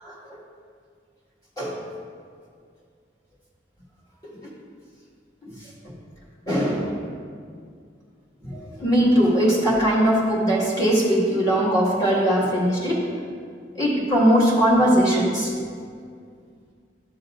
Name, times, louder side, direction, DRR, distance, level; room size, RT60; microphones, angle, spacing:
voice 1, 6.5-7.0 8.4-13.0 13.8-15.5, equal, 20° left, -7 dB, 2.0 m, -20 dB
12.5 x 7.0 x 2.6 m, 2.2 s
head